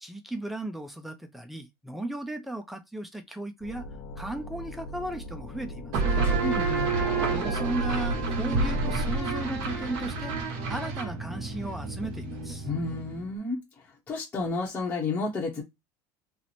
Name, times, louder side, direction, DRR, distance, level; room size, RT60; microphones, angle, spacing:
voice 1, 0.0-3.9 4.2-6.2 7.3-10.3 10.7-12.7, right 1 dB, ahead, 0.4 m, -36 dB
sound 1, 3.6-10.4, left 3 dB, 45° left, 0.7 m, -40 dB
sound 2, 5.9-13.3, right 4 dB, 55° right, 1.1 m, -29 dB
voice 2, 6.2-6.9 12.7-13.6 14.1-15.6, left 3 dB, 15° left, 0.8 m, -31 dB
3.0 x 2.0 x 4.1 m
cardioid pair, 175°, 10 cm